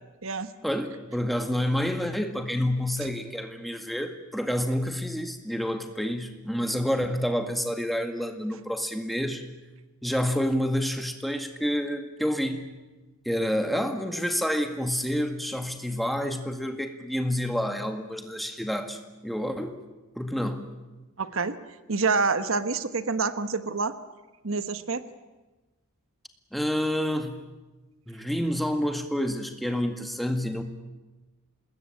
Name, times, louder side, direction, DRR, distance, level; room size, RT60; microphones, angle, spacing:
voice 1, 0.6-9.4 10.0-12.7 13.3-19.8 20.2-20.8 26.5-27.5 28.1-30.6, equal, ahead, 5 dB, 1.9 m, -28 dB
voice 2, 21.2-21.5 21.9-23.9 24.4-25.0, right 4 dB, 70° right, 11 dB, 1.2 m, -27 dB
26.5 x 20.5 x 8.8 m, 1.2 s
head